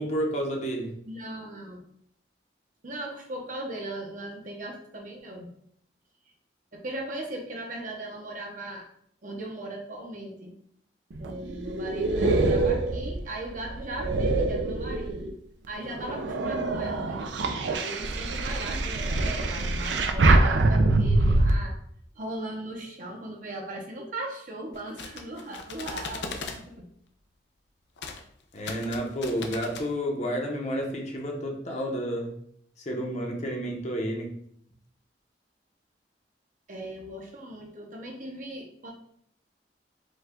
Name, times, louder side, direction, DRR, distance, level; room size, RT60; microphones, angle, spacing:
voice 1, 0.0-0.9 28.5-32.3 32.9-34.3, equal, 40° left, 0 dB, 0.9 m, -30 dB
voice 2, 1.0-1.8 2.8-5.5 6.7-8.9 9.2-10.5 11.2-15.2 15.7-17.2 17.7-21.8 22.1-26.8 36.7-38.9, right 1 dB, 50° right, 1 dB, 0.9 m, -38 dB
sound 1, 11.1-15.4 15.9-21.5, right 2 dB, 90° right, 0.5 m, -25 dB
sound 2, 24.7-26.6 28.0-28.2 28.5-29.9, left 4 dB, 70° left, 0.6 m, -38 dB
5.2 x 2.4 x 3.6 m, 0.67 s
head